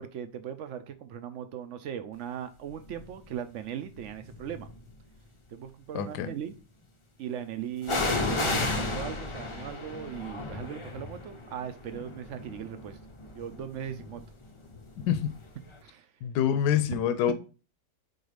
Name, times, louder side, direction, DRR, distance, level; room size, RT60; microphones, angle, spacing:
voice 1, 0.0-4.7 5.5-6.5 7.2-8.0 8.4-13.0 13.4-14.2 15.8-16.1 16.9-17.0 17.3-17.4, right 9 dB, 70° right, 0.7 m, -38 dB
sound 1, 2.9-3.2 4.0-4.9 7.8-15.5 15.7-15.8, left 2 dB, 45° left, 0.3 m, -34 dB
voice 2, 5.9-6.3 15.1-15.3 16.2-17.3, left 9 dB, 75° left, 1.1 m, -26 dB
4.7 x 4.0 x 4.9 m
omnidirectional pair, 1.8 m